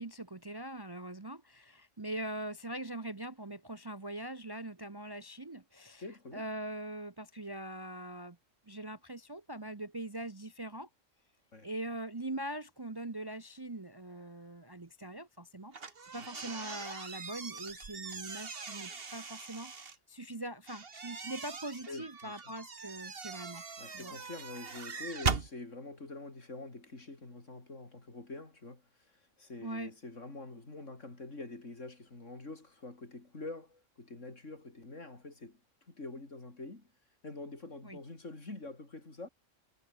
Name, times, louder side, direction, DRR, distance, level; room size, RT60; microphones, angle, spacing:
voice 1, 0.0-6.0 6.3-8.4 8.7-10.9 11.6-24.2 29.6-29.9 37.8-38.0, right 1 dB, 20° right, 0.8 m, -42 dB
voice 2, 6.0-6.5 11.5-11.7 16.2-16.3 21.9-22.4 23.8-35.6 35.9-36.9 37.2-39.3, left 2 dB, 70° left, 4.4 m, -46 dB
sound 1, 15.7-20.0 20.7-25.5, right 5 dB, 50° right, 1.8 m, -40 dB
omnidirectional pair, 1.3 m